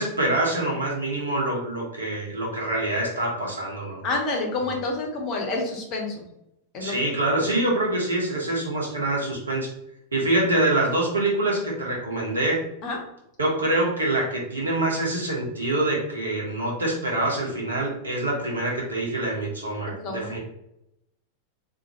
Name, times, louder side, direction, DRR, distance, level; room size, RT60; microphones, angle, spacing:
voice 1, 0.0-4.0 6.8-9.7 10.1-12.6 13.4-20.4, right 2 dB, 75° right, -2 dB, 1.1 m, -25 dB
voice 2, 4.0-6.3 6.7-6.9 12.8-13.0 20.0-20.4, left 3 dB, 35° left, 0 dB, 1.0 m, -28 dB
3.8 x 2.8 x 2.9 m, 0.82 s
figure-of-eight pair, 90°, 0 cm